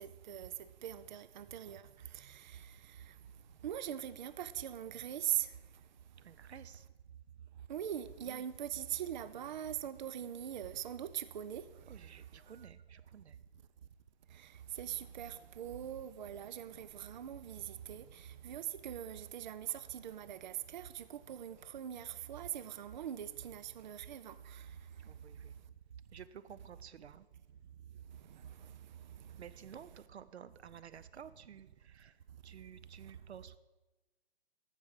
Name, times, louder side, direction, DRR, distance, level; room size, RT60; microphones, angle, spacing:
voice 1, 0.0-1.8 2.1-3.1 3.6-5.5 7.7-11.6 12.5-12.7 14.3-24.7 28.2-28.7 29.2-29.3, right 10 dB, 45° right, 0.5 m, -42 dB
voice 2, 6.2-6.8 8.3-8.4 11.9-13.4 25.0-25.5 26.1-27.3 29.4-32.1 32.4-33.6, right 8 dB, 90° right, 0.6 m, -53 dB
14.0 x 5.5 x 4.8 m
hypercardioid pair, 145°, 32 cm